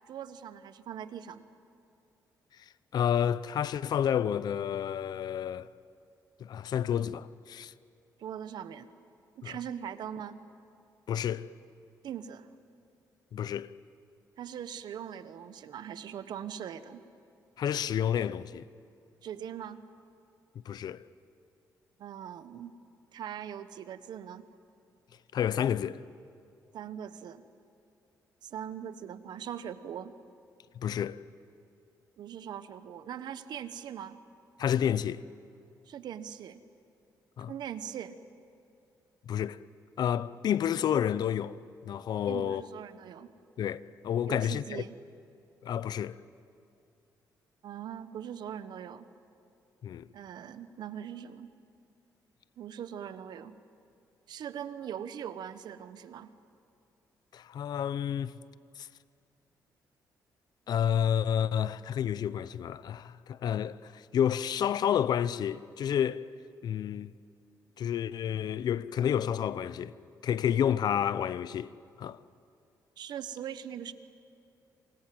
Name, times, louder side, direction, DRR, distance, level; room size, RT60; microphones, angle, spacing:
voice 1, 0.1-1.4 8.2-8.9 9.4-10.4 12.0-12.5 14.4-17.0 19.2-19.8 22.0-22.7 23.1-24.5 26.7-27.4 28.4-30.1 32.2-34.2 35.9-36.6 37.5-38.2 42.3-43.3 44.3-44.9 47.6-49.1 50.1-51.5 52.6-53.5 54.3-56.3 73.0-73.9, right 9 dB, 75° right, 1.2 m, -41 dB
voice 2, 2.9-5.7 6.4-7.7 9.4-9.6 11.1-11.5 13.3-13.7 17.6-18.7 20.6-21.0 25.3-26.0 30.7-31.2 34.6-35.2 37.4-37.5 39.3-39.6 40.0-41.6 41.9-42.6 43.6-44.8 45.6-46.2 49.8-50.1 57.3-58.4 58.8-58.9 60.7-66.2 66.6-67.1 67.8-69.9 70.2-71.7 72.0-72.2, left 9 dB, 65° left, 0.7 m, -30 dB
27.5 x 26.0 x 7.8 m
cardioid pair, 90°, 7 cm